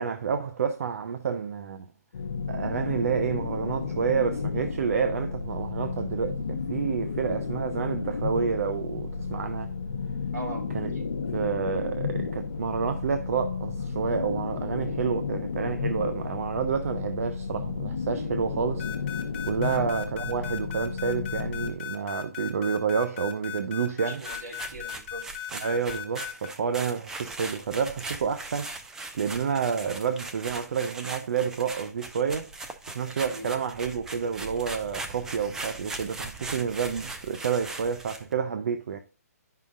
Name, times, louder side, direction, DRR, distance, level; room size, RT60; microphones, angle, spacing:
voice 1, 0.0-1.9 2.5-9.7 10.7-10.9 11.3-18.9 19.5-24.2 25.5-28.7 29.1-32.5 32.9-39.0, right 6 dB, 60° right, 0.6 m, -29 dB
sound 1, 2.1-21.7, left 5 dB, 70° left, 0.8 m, -32 dB
voice 2, 10.3-10.7 10.9-11.1 19.7-19.9 24.0-25.2 33.3-33.5, right 2 dB, 80° right, 3.5 m, -40 dB
sound 2, 18.8-26.5, left 13 dB, 25° left, 1.4 m, -36 dB
sound 3, 24.1-38.3, right 3 dB, 5° right, 0.4 m, -39 dB
10.5 x 5.6 x 2.5 m
hypercardioid pair, 155°, 9 cm